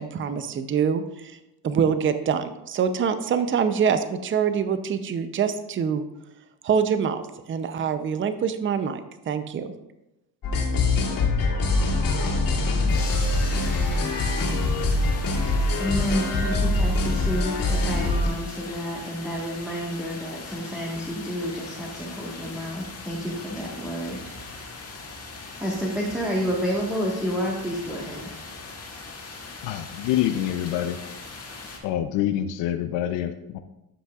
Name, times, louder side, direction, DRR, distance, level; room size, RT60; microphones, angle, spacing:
voice 1, 0.0-1.4 1.6-6.0 6.6-9.7, right 7 dB, 30° right, 10 dB, 0.6 m, -25 dB
sound 1, 10.4-18.3, left 2 dB, 50° left, 2.4 m, -23 dB
sound 2, 12.9-31.8, left 3 dB, 35° left, 1.8 m, -40 dB
voice 2, 15.7-24.9 25.5-28.3, equal, ahead, -5 dB, 1.4 m, -30 dB
voice 3, 29.6-31.0 31.8-33.6, left 11 dB, 75° left, 9 dB, 0.6 m, -26 dB
12.5 x 5.6 x 2.4 m, 0.92 s
supercardioid pair, 100°, 43 cm